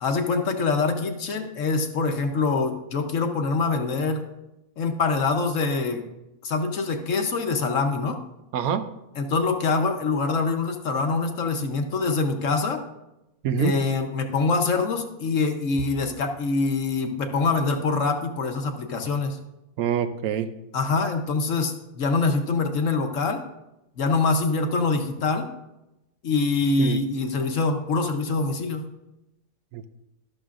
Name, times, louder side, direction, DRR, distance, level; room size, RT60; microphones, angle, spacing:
voice 1, 0.0-4.2 4.8-6.0 6.4-8.2 9.2-12.8 13.6-19.4 20.7-23.4 24.0-25.5 26.2-28.9, left 4 dB, 60° left, 6 dB, 1.2 m, -24 dB
voice 2, 8.5-8.9 13.4-13.7 19.8-20.5 26.8-27.0 29.7-29.9, right 8 dB, 75° right, 10 dB, 1.1 m, -25 dB
12.5 x 12.0 x 2.5 m, 0.93 s
omnidirectional pair, 1.6 m